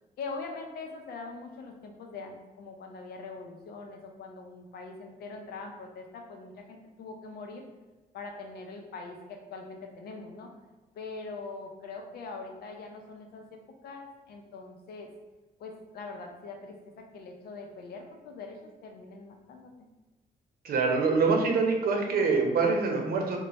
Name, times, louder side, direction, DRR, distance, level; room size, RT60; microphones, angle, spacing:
voice 1, 0.2-7.7 8.1-10.5 11.0-15.1 15.6-19.9, left 3 dB, 85° left, 3 dB, 0.6 m, -42 dB
voice 2, 20.6-23.4, right 4 dB, 70° right, 2 dB, 0.7 m, -25 dB
3.2 x 2.2 x 4.0 m, 1.2 s
cardioid pair, 90°, 16 cm